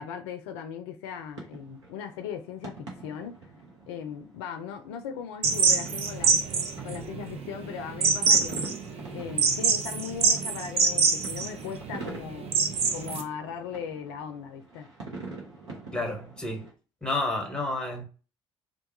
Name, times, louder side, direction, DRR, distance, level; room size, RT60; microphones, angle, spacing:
voice 1, 0.0-3.3 3.9-6.4 6.8-8.6 9.1-12.5 12.9-14.9, left 7 dB, 65° left, 0.4 m, -38 dB
sound 1, 1.0-16.7, right 3 dB, 80° right, 1.0 m, -46 dB
sound 2, 5.4-13.2, right 5 dB, 45° right, 0.7 m, -25 dB
voice 2, 15.9-16.7 17.0-18.0, left 2 dB, 5° left, 1.2 m, -30 dB
2.5 x 2.3 x 2.7 m
figure-of-eight pair, 50°, 15 cm